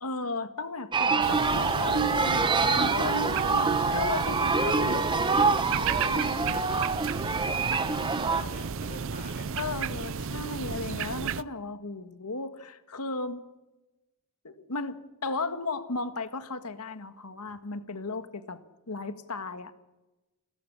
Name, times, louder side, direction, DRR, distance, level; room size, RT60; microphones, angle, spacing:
voice 1, 0.0-5.0 5.9-6.5 9.6-13.4 14.4-18.6 18.9-19.8, left 3 dB, 85° left, 9 dB, 1.7 m, -35 dB
sound 1, 0.9-8.4, right 4 dB, 20° right, 1.1 m, -26 dB
sound 2, 1.2-11.4, right 6 dB, 60° right, 0.6 m, -33 dB
voice 2, 1.8-6.8 7.4-9.5, left 2 dB, 35° left, 4 dB, 5.7 m, -48 dB
30.0 x 13.5 x 7.0 m, 1.0 s
head